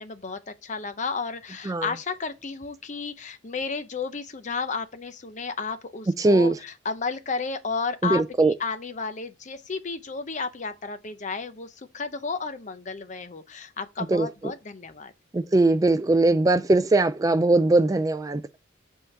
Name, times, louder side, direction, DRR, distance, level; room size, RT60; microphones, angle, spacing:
voice 1, 0.0-15.1, left 4 dB, 40° left, 0.7 m, -33 dB
voice 2, 6.2-6.6 8.0-8.5 14.1-14.3 15.3-18.4, right 2 dB, 15° right, 0.3 m, -20 dB
8.0 x 3.7 x 5.7 m
head